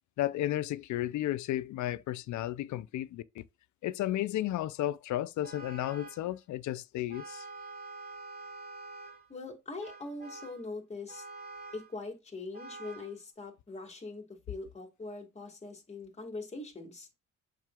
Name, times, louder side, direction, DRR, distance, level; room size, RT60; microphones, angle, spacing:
voice 1, 0.2-3.4 3.8-7.4, left 14 dB, 75° left, 0.6 m, -33 dB
Vehicle horn car horn honking, 5.4-6.3 7.1-9.3 9.8-10.6 11.1-11.9 12.5-13.1, right 3 dB, 30° right, 2.8 m, -46 dB
voice 2, 9.3-11.2 11.7-17.1, left 3 dB, 20° left, 2.1 m, -42 dB
7.4 x 5.2 x 2.4 m
cardioid pair, 90°, 30 cm